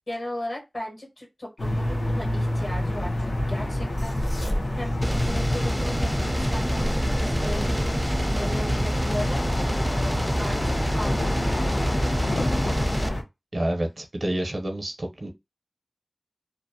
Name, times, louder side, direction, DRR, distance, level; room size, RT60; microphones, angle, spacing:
voice 1, 0.0-9.5 10.4-11.6, left 1 dB, 65° left, 1.3 m, -37 dB
sound 1, 1.6-13.2, left 1 dB, 85° left, 0.7 m, -28 dB
sound 2, 4.0-12.3, equal, 45° left, 0.7 m, -35 dB
sound 3, 5.0-13.1, equal, 10° right, 0.4 m, -27 dB
voice 2, 13.5-15.3, right 1 dB, 55° right, 0.7 m, -28 dB
2.5 x 2.1 x 2.7 m
wide cardioid pair, 50°, 0 cm